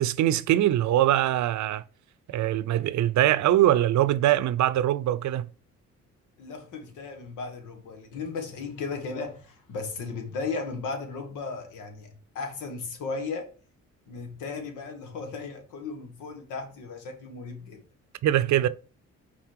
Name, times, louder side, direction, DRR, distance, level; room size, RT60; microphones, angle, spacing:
voice 1, 0.0-1.8 2.3-5.5 18.2-18.7, right 13 dB, 70° right, 0.6 m, -22 dB
voice 2, 6.4-13.5 14.1-17.8, left 4 dB, 90° left, 1.7 m, -36 dB
5.9 x 4.1 x 4.7 m
cardioid pair, 90°, 30 cm